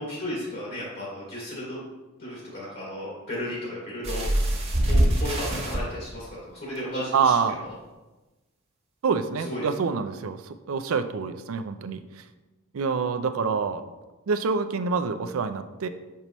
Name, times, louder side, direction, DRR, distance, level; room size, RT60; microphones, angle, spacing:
voice 1, 0.0-1.8 2.2-4.3 4.8-7.3 9.5-9.7, left 1 dB, 50° left, -7 dB, 2.2 m, -34 dB
sound 1, 4.0-5.8 6.7-6.8 7.3-7.4, right 1 dB, 30° right, 1.3 m, -23 dB
voice 2, 7.1-7.6 9.0-12.2 12.7-13.8 14.3-15.9, right 5 dB, 75° right, 10 dB, 0.5 m, -26 dB
6.8 x 5.4 x 3.0 m, 1.1 s
head